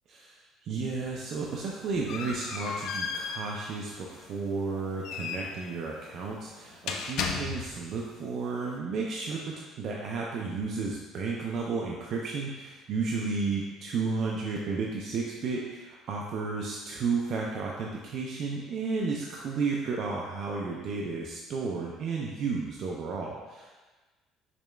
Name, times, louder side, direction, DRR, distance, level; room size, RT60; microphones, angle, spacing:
voice 1, 0.1-23.7, right 4 dB, 45° right, -2 dB, 0.3 m, -33 dB
sound 1, 1.3-7.9, left 5 dB, 65° left, 0.3 m, -36 dB
4.9 x 2.2 x 3.2 m, 1.2 s
cardioid pair, 175°, 0 cm